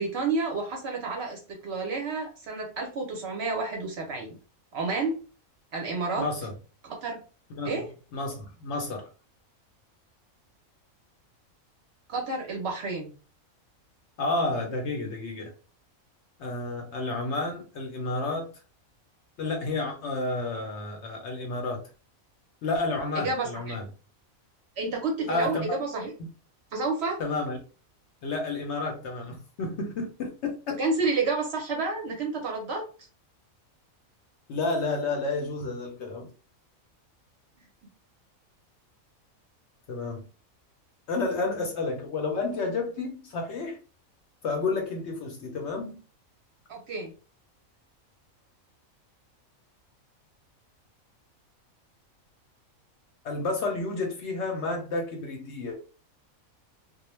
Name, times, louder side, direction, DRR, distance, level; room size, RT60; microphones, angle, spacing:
voice 1, 0.0-4.3 4.7-5.2 5.7-6.2 6.8-7.2 7.6-7.8 12.1-13.1 23.2-23.8 24.8-26.1 26.7-27.2 30.8-32.8 46.7-47.1, right 3 dB, 60° right, 0.7 m, -30 dB
voice 2, 6.2-6.5 7.5-7.8 8.1-9.1 14.2-15.5 16.4-18.5 19.4-21.9 22.6-23.8 25.3-25.7 26.2-26.3 27.2-27.6 28.2-30.8 34.5-36.3 39.9-40.3 41.1-43.8 44.4-46.0 53.2-55.8, left 3 dB, 65° left, 0.7 m, -31 dB
2.3 x 2.1 x 3.0 m
omnidirectional pair, 1.4 m